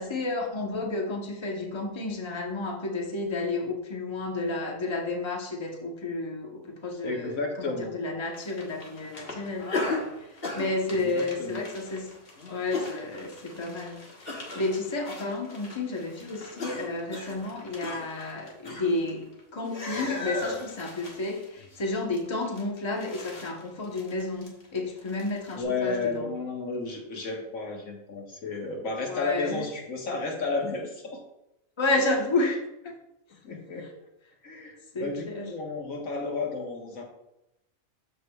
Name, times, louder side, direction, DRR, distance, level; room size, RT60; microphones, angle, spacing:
voice 1, 0.0-9.9 10.2-12.1 12.5-26.3 29.0-29.6 31.8-32.9 34.9-35.5, left 2 dB, 25° left, 0 dB, 1.0 m, -31 dB
voice 2, 7.0-8.0 11.0-11.6 25.5-31.2 33.4-33.9 34.4-37.0, left 3 dB, 90° left, 0 dB, 1.8 m, -32 dB
sound 1, 8.3-19.4 19.6-25.6, left 2 dB, 45° left, 1.6 m, -38 dB
13.0 x 4.8 x 2.4 m, 0.87 s
omnidirectional pair, 1.4 m